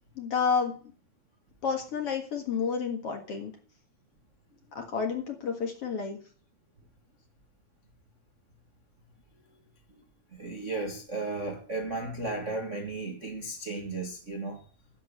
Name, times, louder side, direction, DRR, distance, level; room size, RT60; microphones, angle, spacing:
voice 1, 0.2-0.7 1.6-3.5 4.7-6.2, left 6 dB, 50° left, 2.3 m, -30 dB
voice 2, 10.3-14.6, right 2 dB, 35° right, 1.2 m, -34 dB
11.5 x 7.6 x 7.1 m
omnidirectional pair, 4.1 m